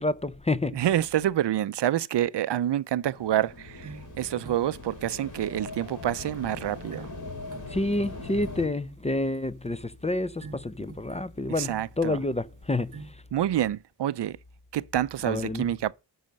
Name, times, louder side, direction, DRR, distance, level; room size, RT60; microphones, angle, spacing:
voice 1, 0.0-0.8 7.7-13.2 15.2-15.7, left 2 dB, 15° left, 0.5 m, -29 dB
voice 2, 0.7-7.1 11.6-12.2 13.3-14.4 14.7-15.9, right 12 dB, 70° right, 0.5 m, -27 dB
sound 1, 3.0-8.7, left 2 dB, 45° left, 3.6 m, -41 dB
sound 2, 3.8-13.1, right 4 dB, 45° right, 0.9 m, -50 dB
10.5 x 5.7 x 5.2 m
wide cardioid pair, 80°, 43 cm